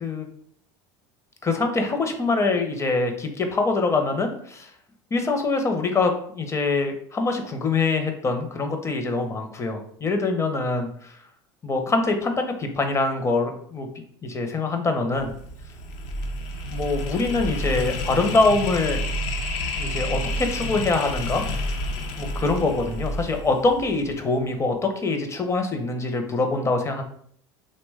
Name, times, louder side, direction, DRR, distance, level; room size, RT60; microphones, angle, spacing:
voice 1, 1.4-4.7 5.1-11.2 11.6-13.9 14.2-15.3 16.7-19.0 19.8-21.5 22.2-27.0, left 3 dB, 20° left, 5 dB, 0.6 m, -24 dB
sound 1, 15.1-24.3, left 1 dB, 65° left, 0.5 m, -30 dB
2.9 x 2.1 x 3.3 m, 0.63 s
hypercardioid pair, 90°, 12 cm